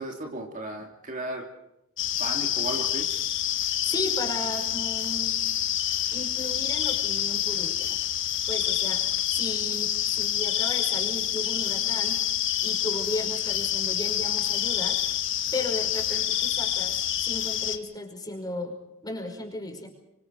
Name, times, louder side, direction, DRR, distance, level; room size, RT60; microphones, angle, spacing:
voice 1, 0.0-1.5 2.2-3.1, right 1 dB, 40° right, 2 dB, 3.1 m, -35 dB
sound 1, 2.0-17.8, left 11 dB, 60° left, 1.6 m, -27 dB
voice 2, 3.9-5.4 6.1-7.9 8.5-12.2 12.6-15.0 15.5-16.9 17.2-18.8 19.0-19.9, left 2 dB, 20° left, 3 dB, 5.4 m, -35 dB
26.0 x 25.5 x 4.8 m, 0.84 s
head